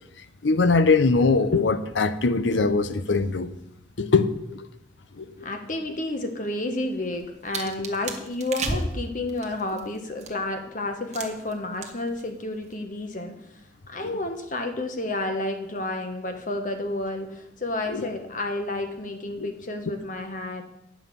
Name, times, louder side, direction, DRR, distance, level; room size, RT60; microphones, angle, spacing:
voice 1, 0.4-3.5 4.0-4.7 5.1-5.3 14.0-14.2 17.9-18.1 19.4-19.5, left 4 dB, 85° left, 12 dB, 0.7 m, -22 dB
voice 2, 5.4-13.6 13.9-20.6, left 2 dB, 45° left, 5 dB, 1.3 m, -31 dB
sound 1, 6.9-10.6 11.1-11.5 11.8-12.2 12.5-12.7, right 3 dB, 40° right, 1.1 m, -33 dB
9.8 x 5.6 x 6.9 m, 0.82 s
head